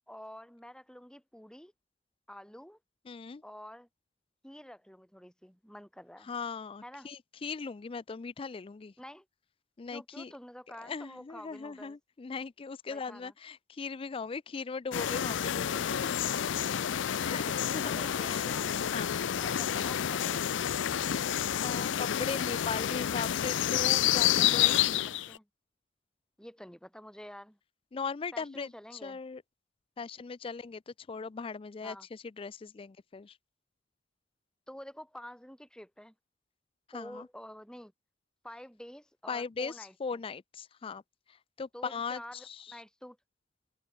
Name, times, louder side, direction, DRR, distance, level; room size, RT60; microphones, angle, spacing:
voice 1, 0.1-1.7 2.3-2.8 3.4-3.9 4.4-6.3 6.8-7.1 9.0-9.3 9.9-12.0 12.9-13.3 17.8-18.7 19.4-20.5 25.3-25.5 26.4-27.6 28.3-29.2 31.8-32.1 34.7-36.1 36.9-37.9 38.4-40.2 41.7-43.2, equal, 5° left, 3.7 m, -48 dB
voice 2, 3.1-3.4 6.2-8.9 9.8-10.3 10.8-16.2 17.2-18.5 18.9-19.2 21.1-25.0 27.9-29.4 30.0-33.4 36.9-37.3 39.3-41.0 41.3-42.8, left 5 dB, 30° left, 0.4 m, -39 dB
sound 1, 14.9-25.4, left 10 dB, 90° left, 0.5 m, -29 dB
head